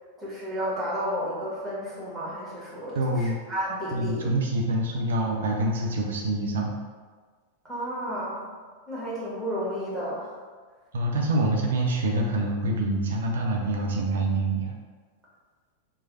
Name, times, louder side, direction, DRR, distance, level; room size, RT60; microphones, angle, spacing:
voice 1, 0.2-4.3 7.6-8.5 8.9-10.4, equal, 10° right, -7 dB, 1.5 m, -32 dB
voice 2, 2.9-3.4 3.9-6.7 10.9-14.7, right 1 dB, 60° right, 0 dB, 0.5 m, -26 dB
3.2 x 2.2 x 4.1 m, 1.5 s
figure-of-eight pair, 90°, 0 cm